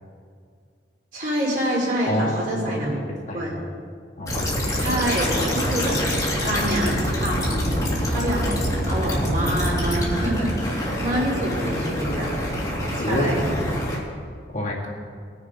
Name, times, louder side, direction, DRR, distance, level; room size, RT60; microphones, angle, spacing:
voice 1, 1.1-3.0 3.3-3.5 4.7-6.0 6.4-7.7 8.1-12.3 12.9-13.5, right 1 dB, 50° right, -4 dB, 4.0 m, -26 dB
voice 2, 2.1-3.0 3.3-3.5 4.2-4.8 13.0-13.3 14.5-14.9, left 1 dB, 45° left, -3 dB, 2.1 m, -28 dB
sound 1, 4.3-14.0, equal, 20° left, 2.5 m, -25 dB
20.0 x 7.0 x 5.1 m, 2.1 s
head